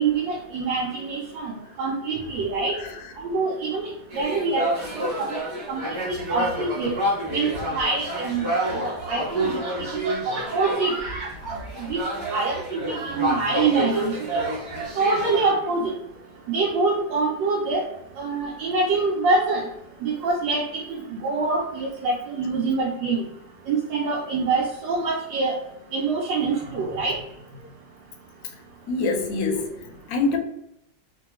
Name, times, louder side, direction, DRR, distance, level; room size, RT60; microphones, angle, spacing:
voice 1, 0.0-2.7 3.2-3.9 4.1-4.7 4.9-6.9 7.3-9.6 10.0-10.2 10.5-10.9 11.8-12.0 12.3-14.2 15.0-15.9 16.5-17.9 18.2-19.6 20.0-20.8 21.1-23.2 23.7-25.5 25.9-27.1, right 3 dB, 85° right, -3 dB, 1.3 m, -25 dB
sound 1, 4.1-15.5, right 1 dB, 40° right, 1.3 m, -29 dB
voice 2, 28.9-30.4, left 3 dB, 70° left, 3 dB, 0.9 m, -25 dB
3.1 x 2.2 x 2.9 m, 0.79 s
omnidirectional pair, 2.0 m